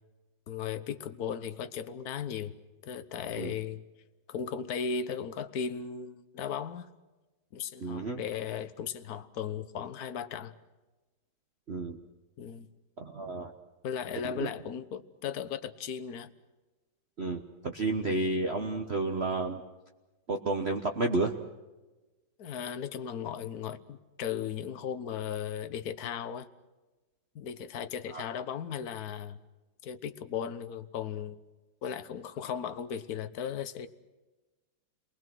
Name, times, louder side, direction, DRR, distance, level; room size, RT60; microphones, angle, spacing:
voice 1, 0.5-2.5 2.8-3.8 4.3-6.9 7.5-10.5 12.4-12.7 13.8-16.3 22.4-26.5 27.3-29.4 29.8-31.4 31.8-33.9, left 7 dB, 55° left, 11 dB, 1.4 m, -36 dB
voice 2, 7.8-8.2 11.7-12.0 13.0-13.5 14.2-14.5 17.2-19.6 20.3-21.3 28.1-28.3, right 2 dB, 40° right, 3 dB, 1.2 m, -31 dB
30.0 x 21.0 x 6.2 m, 1.1 s
omnidirectional pair, 2.1 m